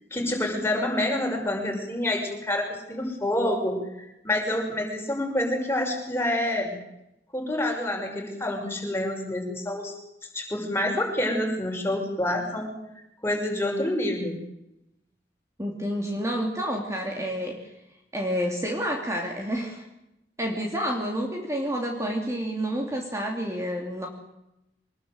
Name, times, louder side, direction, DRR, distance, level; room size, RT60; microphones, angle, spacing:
voice 1, 0.1-3.8 4.2-6.8 7.3-9.9 10.3-12.7 13.2-14.4, left 1 dB, 15° left, 1 dB, 6.2 m, -27 dB
voice 2, 15.6-17.6 18.1-19.8 20.4-24.1, equal, 15° right, 0 dB, 3.0 m, -29 dB
24.5 x 20.5 x 8.1 m, 0.89 s
head